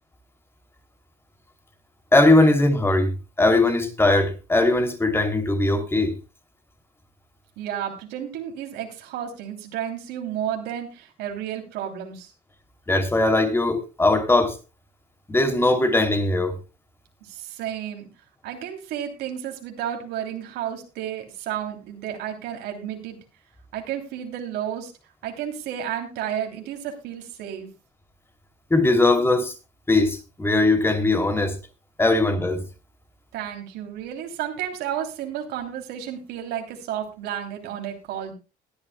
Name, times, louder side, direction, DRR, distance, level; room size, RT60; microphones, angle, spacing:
voice 1, 2.1-6.2 12.9-14.6 15.3-16.6 28.7-29.5 29.9-31.6 32.0-32.7, left 2 dB, 15° left, 2.7 m, -20 dB
voice 2, 7.6-12.3 17.3-18.1 18.4-23.2 23.7-24.9 25.2-27.7 33.3-38.3, right 10 dB, 85° right, 3.0 m, -32 dB
21.5 x 11.5 x 2.2 m
cardioid pair, 110°, 17 cm